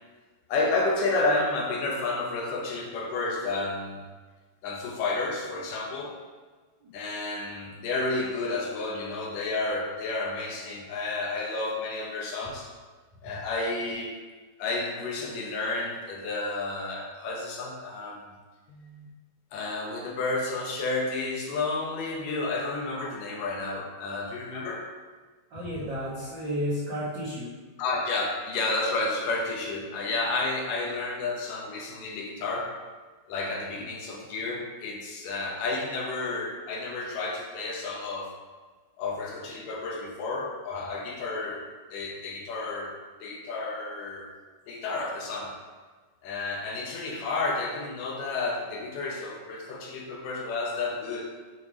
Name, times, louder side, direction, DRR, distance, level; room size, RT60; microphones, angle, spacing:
voice 1, 0.5-4.0 4.6-6.2 6.9-12.7 13.2-14.1 14.6-18.3 18.7-19.1 19.5-24.9 27.8-32.7 33.3-38.4 39.0-44.3 44.7-45.6 46.2-51.3, left 3 dB, 75° left, -1 dB, 2.3 m, -31 dB
voice 2, 25.5-27.5, equal, 70° right, -9 dB, 1.1 m, -32 dB
7.4 x 3.2 x 4.9 m, 1.4 s
omnidirectional pair, 4.1 m